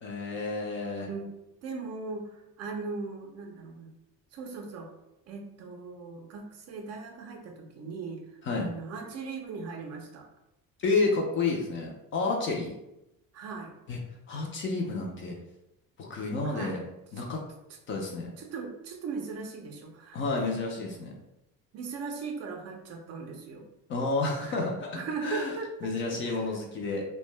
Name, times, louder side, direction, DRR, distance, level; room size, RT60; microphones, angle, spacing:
voice 1, 0.0-1.1 8.4-8.7 10.8-12.7 13.9-14.0 14.3-15.3 16.0-16.8 17.1-17.4 17.9-18.3 20.1-21.1 23.9-25.5 25.8-27.1, left 3 dB, 35° left, 0 dB, 0.4 m, -30 dB
voice 2, 1.1-3.9 4.3-4.9 5.3-8.2 8.6-10.3 13.3-13.7 14.3-14.4 16.4-16.8 17.2-17.3 18.4-20.6 21.7-23.7 24.4-24.6 24.9-25.9 26.2-26.5, right 4 dB, 45° right, 3 dB, 0.4 m, -39 dB
2.6 x 2.1 x 3.1 m, 0.89 s
cardioid pair, 175°, 36 cm